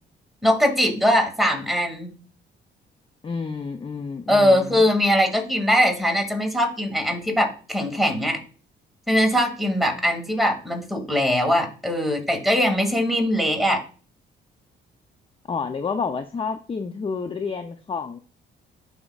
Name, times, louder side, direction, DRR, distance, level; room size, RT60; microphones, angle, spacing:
voice 1, 0.4-2.1 4.3-8.4 9.1-13.8, equal, ahead, 2 dB, 2.2 m, -21 dB
voice 2, 3.2-4.8 15.5-18.2, left 5 dB, 25° left, 7 dB, 0.6 m, -29 dB
11.0 x 5.0 x 2.4 m, 0.39 s
cardioid pair, 90°, 20 cm